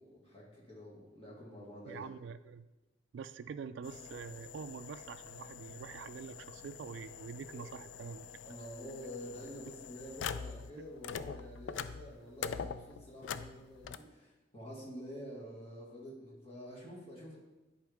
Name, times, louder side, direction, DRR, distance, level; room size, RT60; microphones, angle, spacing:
voice 1, 0.0-2.1 7.5-8.2 8.4-17.4, equal, 30° left, -4 dB, 2.2 m, -48 dB
voice 2, 1.9-2.7 3.1-8.3, right 6 dB, 70° right, 11 dB, 0.3 m, -45 dB
sound 1, 3.8-10.7 11.0-14.0, left 6 dB, 80° left, 0.4 m, -45 dB
10.5 x 4.7 x 3.6 m, 1.1 s
head